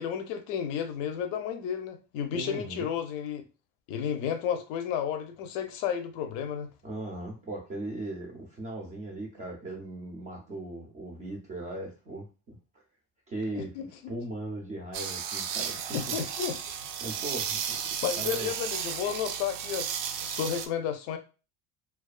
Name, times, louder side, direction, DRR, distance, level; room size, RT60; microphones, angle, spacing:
voice 1, 0.0-3.4 3.9-6.7 13.6-13.9 15.9-16.6 18.0-21.2, left 8 dB, 80° left, 0.5 m, -32 dB
voice 2, 2.3-2.9 6.8-12.6 13.3-15.8 16.1-16.2 17.0-17.8 18.2-18.5, right 1 dB, 20° right, 0.3 m, -38 dB
sound 1, 14.9-20.7, right 8 dB, 80° right, 0.5 m, -34 dB
2.3 x 2.3 x 2.4 m
cardioid pair, 155°, 36 cm